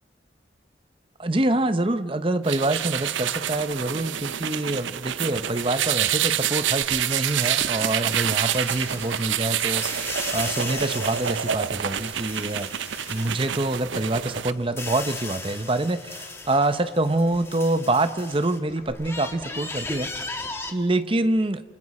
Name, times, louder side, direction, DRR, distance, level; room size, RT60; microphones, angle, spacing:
voice 1, 1.2-12.7 13.1-20.1 20.7-21.6, right 2 dB, 30° right, 12 dB, 0.8 m, -26 dB
sound 1, 2.5-14.5, right 10 dB, 80° right, 0.6 m, -27 dB
sound 2, 6.8-18.9, left 4 dB, 35° left, 5.9 m, -54 dB
sound 3, 6.9-13.8 14.2-18.6 18.9-20.7, left 3 dB, 15° left, 1.4 m, -37 dB
28.0 x 24.5 x 4.3 m, 1.5 s
head